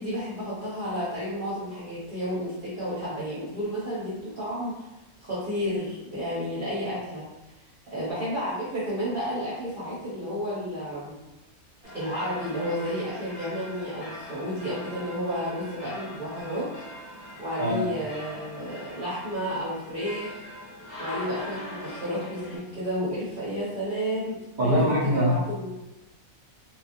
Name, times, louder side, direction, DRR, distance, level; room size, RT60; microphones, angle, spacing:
voice 1, 0.0-4.8 5.2-7.2 7.9-11.1 11.9-16.7 17.4-20.4 21.0-25.7, equal, 50° right, -9 dB, 0.7 m, -31 dB
sound 1, 11.8-22.6, left 1 dB, 15° left, 1.0 m, -41 dB
voice 2, 24.6-25.3, equal, 80° right, -7 dB, 0.4 m, -23 dB
3.0 x 2.0 x 2.5 m, 0.99 s
omnidirectional pair, 1.5 m